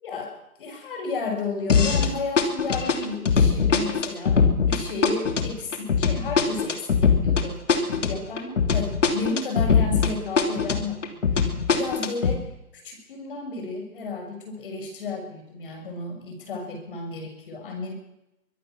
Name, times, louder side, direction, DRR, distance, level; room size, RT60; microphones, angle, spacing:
voice 1, 0.0-11.0 11.3-12.5 12.8-17.9, left 3 dB, 35° left, 4 dB, 6.2 m, -33 dB
sound 1, 1.7-2.1 2.4-10.1 10.4-12.4, left 5 dB, 55° left, 3.0 m, -21 dB
24.0 x 17.5 x 6.3 m, 0.87 s
figure-of-eight pair, 150°, 44 cm